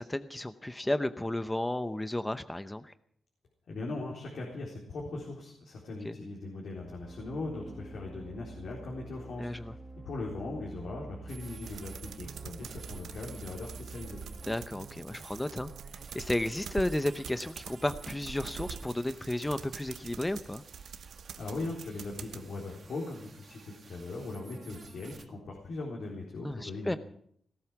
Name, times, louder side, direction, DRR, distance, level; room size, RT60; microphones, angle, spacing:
voice 1, 0.0-2.9 6.0-6.2 9.4-9.7 14.4-20.6 26.4-27.0, left 1 dB, 10° left, 11 dB, 0.7 m, -33 dB
voice 2, 3.7-9.8 10.0-14.2 21.4-27.0, left 2 dB, 65° left, -2 dB, 3.9 m, -39 dB
sound 1, 6.8-14.6, right 3 dB, 5° right, 2.1 m, -47 dB
sound 2, 11.3-25.3, right 5 dB, 55° right, 1.5 m, -53 dB
sound 3, 11.7-22.4, right 7 dB, 85° right, 1.0 m, -45 dB
18.0 x 12.5 x 6.0 m, 0.65 s
cardioid pair, 100°, 0 cm